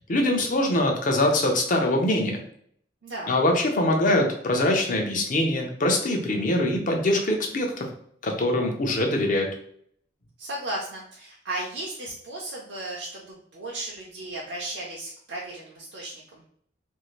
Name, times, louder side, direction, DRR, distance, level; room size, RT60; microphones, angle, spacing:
voice 1, 0.1-2.4 3.3-7.9 8.2-9.5, left 1 dB, 50° left, 2 dB, 0.6 m, -23 dB
voice 2, 3.0-3.4 10.4-16.5, right 1 dB, 70° right, -4 dB, 0.5 m, -35 dB
2.6 x 2.4 x 3.1 m, 0.64 s
head